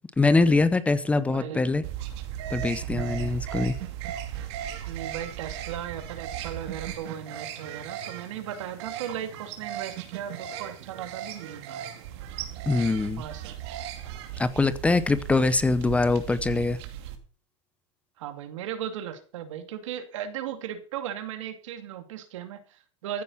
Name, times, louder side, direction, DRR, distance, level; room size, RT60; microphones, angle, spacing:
voice 1, 0.2-1.8 2.5-3.7 12.7-13.2 14.4-16.8, left 3 dB, 10° left, 14 dB, 0.7 m, -23 dB
voice 2, 1.1-1.7 2.8-3.4 4.9-11.9 13.2-13.5 18.2-23.2, right 10 dB, 80° right, 8 dB, 2.6 m, -37 dB
sound 1, 1.8-17.1, right 10 dB, 60° right, 2.6 m, -37 dB
14.5 x 9.2 x 5.6 m, 0.41 s
supercardioid pair, 155°, 16 cm